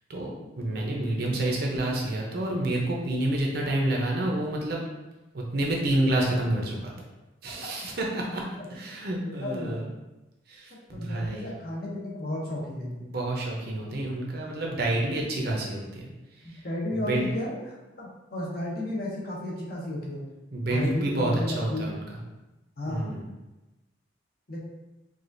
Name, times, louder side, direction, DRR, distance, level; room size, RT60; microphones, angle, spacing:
voice 1, 0.1-4.8 5.3-6.9 7.4-8.4 8.7-9.8 10.5-11.5 13.1-16.1 16.4-16.6 16.9-17.3 20.5-22.2 22.9-23.2, right 1 dB, 50° right, -1 dB, 0.7 m, -28 dB
voice 2, 9.2-9.9 10.9-13.0 16.4-20.2 20.7-21.8 22.8-23.1 24.5-24.6, left 1 dB, 50° left, -3 dB, 0.8 m, -33 dB
4.8 x 2.4 x 2.6 m, 1.0 s
head